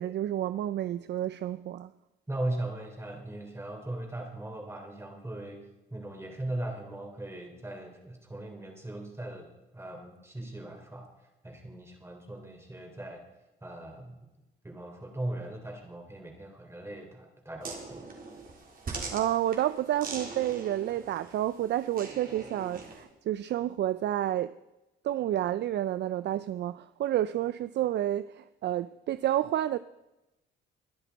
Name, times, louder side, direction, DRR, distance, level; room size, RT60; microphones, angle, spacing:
voice 1, 0.0-1.9 19.1-24.5 25.0-29.8, right 12 dB, 60° right, 0.4 m, -30 dB
voice 2, 2.3-13.2 13.6-14.3 14.6-18.1, right 1 dB, 15° right, 3.5 m, -39 dB
sound 1, 17.6-23.0, right 4 dB, 45° right, 3.6 m, -42 dB
22.0 x 10.0 x 4.1 m
cardioid pair, 90°, 20 cm